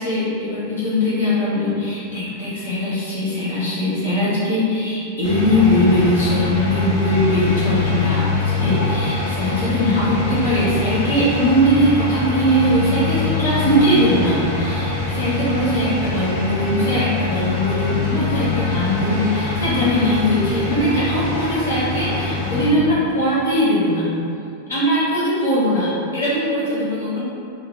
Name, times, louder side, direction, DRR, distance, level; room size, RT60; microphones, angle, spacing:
voice 1, 0.0-24.1 24.7-27.2, equal, 70° left, -11 dB, 1.4 m, -20 dB
sound 1, 5.2-22.7, left 3 dB, 50° left, 0.8 m, -24 dB
4.4 x 2.2 x 3.5 m, 2.6 s
figure-of-eight pair, 90°, 0 cm